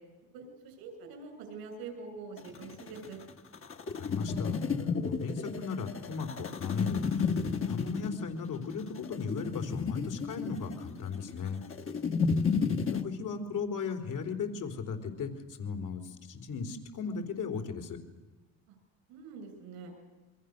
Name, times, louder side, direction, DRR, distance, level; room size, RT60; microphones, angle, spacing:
voice 1, 0.3-3.2 12.2-12.6 18.7-18.8 19.1-19.9, right 4 dB, 90° right, 5 dB, 7.5 m, -45 dB
sound 1, 2.4-13.0, left 5 dB, 35° left, 2.1 m, -32 dB
voice 2, 3.7-7.4 7.6-11.6 12.9-18.0, left 5 dB, 60° left, 6 dB, 4.0 m, -37 dB
28.0 x 23.5 x 6.8 m, 1.2 s
cardioid pair, 95°, 35 cm